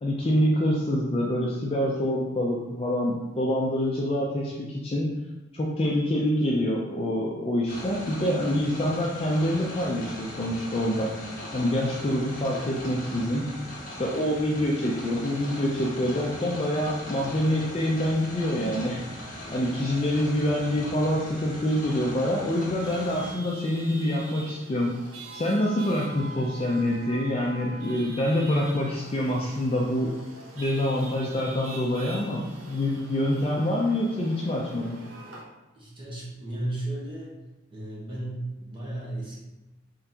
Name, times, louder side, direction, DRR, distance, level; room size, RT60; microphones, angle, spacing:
voice 1, 0.0-5.1 5.5-11.2 11.5-13.5 14.0-24.9 25.3-30.1 30.5-35.0, left 1 dB, 30° left, -3 dB, 0.4 m, -26 dB
sound 1, 7.7-23.3, left 1 dB, 45° left, 1.1 m, -39 dB
Chatter / Vehicle horn car horn honking / Traffic noise roadway noise, 22.8-35.4, right 2 dB, 85° right, 0.9 m, -44 dB
voice 2, 35.7-37.3 37.7-39.4, right 1 dB, 25° right, -6 dB, 1.0 m, -34 dB
3.7 x 3.4 x 2.8 m, 1.0 s
head